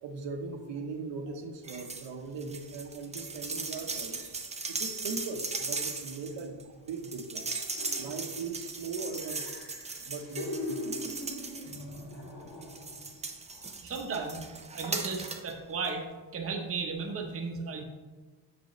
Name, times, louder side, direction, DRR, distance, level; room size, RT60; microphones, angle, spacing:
voice 1, 0.0-4.2 4.7-7.6 8.0-9.4 10.0-11.2, right 4 dB, 75° right, 4 dB, 0.9 m, -39 dB
sound 1, 1.6-2.1 2.4-12.1 12.6-15.5 15.8-15.9, right 4 dB, 15° right, 0.4 m, -38 dB
sound 2, 7.7-8.6 9.0-13.1 13.5-13.7, left 2 dB, 75° left, 2.0 m, -41 dB
voice 2, 13.8-14.4 14.7-16.1 16.3-17.8, right 4 dB, 30° right, 2 dB, 0.8 m, -35 dB
7.6 x 6.1 x 3.1 m, 1.3 s
wide cardioid pair, 160°, 44 cm